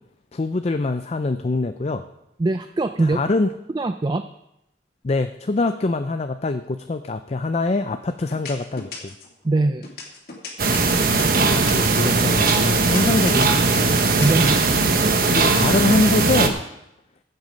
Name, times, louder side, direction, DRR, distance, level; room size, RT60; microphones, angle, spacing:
voice 1, 0.3-2.0 3.0-3.5 5.0-9.1 11.1-13.9 15.3-16.6, left 3 dB, 35° left, 8 dB, 0.4 m, -24 dB
voice 2, 2.4-3.2 3.7-4.2 9.4-9.9 14.2-14.6 15.2-15.3, right 2 dB, 25° right, 9 dB, 0.4 m, -21 dB
sound 1, 7.4-7.8 8.3-9.3 9.8-14.8, left 4 dB, 55° left, 2.6 m, -36 dB
sound 2, 10.6-16.5, right 3 dB, 55° right, 1.1 m, -19 dB
15.0 x 8.1 x 5.2 m, 0.86 s
head